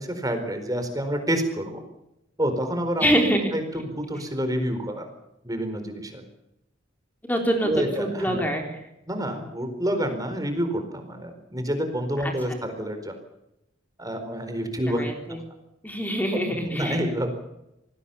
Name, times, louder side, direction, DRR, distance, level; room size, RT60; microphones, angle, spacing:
voice 1, 0.0-1.8 2.4-3.2 3.5-5.1 5.4-6.2 7.6-8.7 9.1-13.1 14.0-15.1 16.3-16.4 16.7-17.3, equal, 20° right, 7 dB, 4.4 m, -28 dB
voice 2, 3.0-3.5 7.3-8.8 12.2-12.3 14.9-15.4 15.8-17.0, equal, 10° left, 3 dB, 3.9 m, -25 dB
28.0 x 20.0 x 7.2 m, 0.87 s
head